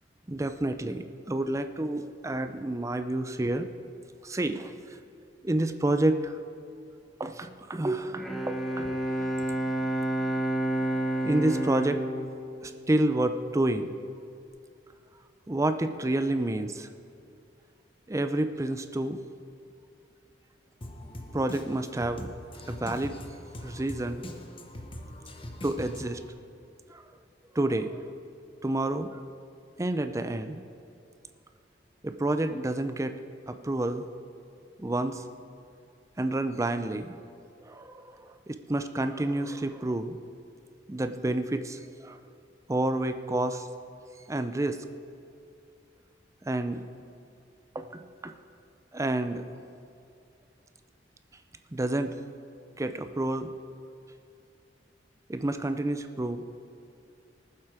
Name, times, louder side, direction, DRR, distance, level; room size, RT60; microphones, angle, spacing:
voice 1, 0.3-3.7 4.2-4.7 5.4-6.4 7.2-9.0 11.2-12.0 12.6-13.9 15.5-16.9 18.1-19.2 21.3-22.3 22.7-23.2 23.6-24.2 25.6-26.2 26.9-27.0 27.5-28.0 28.6-29.2 29.8-30.6 32.0-33.2 33.5-34.0 34.8-35.2 36.2-37.2 37.7-40.2 40.9-42.2 42.7-43.7 44.3-44.8 46.4-46.8 47.7-48.3 48.9-49.4 51.7-52.1 52.8-53.5 55.3-56.4, right 1 dB, 15° right, 9 dB, 0.5 m, -29 dB
Bowed string instrument, 8.1-13.7, right 1 dB, ahead, 0.9 m, -30 dB
Drum kit, 20.8-26.3, left 1 dB, 30° left, 0.9 m, -42 dB
19.0 x 7.6 x 4.9 m, 2.5 s
head